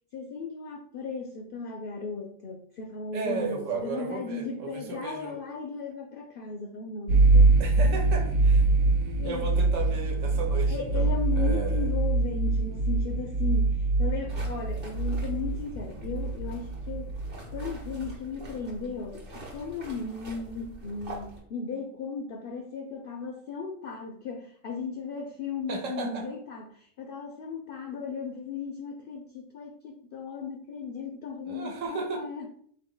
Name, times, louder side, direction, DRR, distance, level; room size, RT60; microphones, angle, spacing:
voice 1, 0.1-7.6 7.9-8.0 9.2-9.6 10.7-17.1 17.5-32.5, left 4 dB, 65° left, 2 dB, 0.5 m, -36 dB
voice 2, 3.1-5.4 7.6-8.6 9.2-11.9 25.7-26.2 31.5-32.2, right 4 dB, 70° right, 2 dB, 1.2 m, -34 dB
sound 1, 7.1-18.0, right 3 dB, 85° right, 1.0 m, -24 dB
sound 2, 14.3-21.4, right 1 dB, 45° right, 1.2 m, -44 dB
3.8 x 2.8 x 3.7 m, 0.63 s
omnidirectional pair, 1.4 m